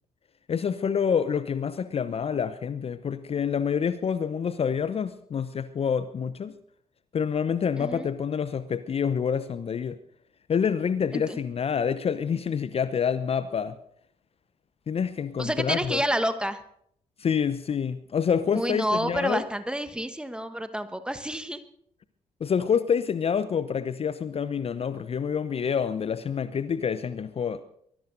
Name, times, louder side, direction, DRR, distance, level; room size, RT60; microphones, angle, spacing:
voice 1, 0.5-6.6 7.1-10.0 10.5-13.8 14.9-16.0 17.2-19.4 22.4-27.6, left 7 dB, 35° left, 14 dB, 0.7 m, -27 dB
voice 2, 7.8-8.1 11.1-11.4 15.4-16.6 18.5-21.6, equal, 5° right, 11 dB, 1.3 m, -29 dB
23.5 x 20.0 x 2.7 m, 0.69 s
figure-of-eight pair, 40°, 17 cm